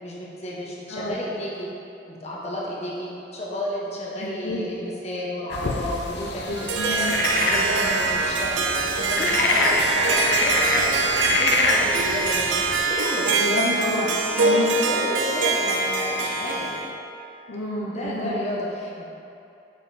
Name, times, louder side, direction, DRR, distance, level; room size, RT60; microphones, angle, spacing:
voice 1, 0.0-1.7 2.1-13.3 14.4-16.7 17.9-19.1, left 1 dB, 35° left, -5 dB, 1.1 m, -31 dB
voice 2, 4.2-4.6 6.2-7.1 9.5-9.8 13.3-14.1 14.4-14.7 17.5-18.3, left 1 dB, 85° left, -7 dB, 1.1 m, -29 dB
sound 1, 5.5-12.9, left 2 dB, 65° left, 0.7 m, -26 dB
Harp, 6.4-16.9, right 3 dB, 85° right, 0.6 m, -24 dB
7.6 x 5.3 x 4.3 m, 2.7 s
head